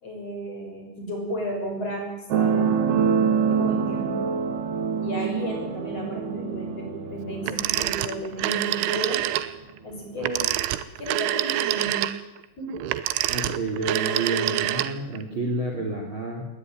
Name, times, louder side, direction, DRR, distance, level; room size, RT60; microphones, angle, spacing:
voice 1, 0.0-2.7 3.5-4.1 5.0-9.2 9.8-10.5 11.0-12.1 12.6-12.7, equal, 30° left, 2 dB, 6.8 m, -33 dB
sound 1, 2.3-9.4 10.2-10.3, right 6 dB, 60° right, 3.5 m, -26 dB
Telephone, 7.4-9.5 10.2-15.2, right 14 dB, 80° right, 3.3 m, -26 dB
voice 2, 13.3-16.5, right 2 dB, 30° right, 2 dB, 2.8 m, -29 dB
21.5 x 18.5 x 9.2 m, 0.96 s
omnidirectional pair, 5.6 m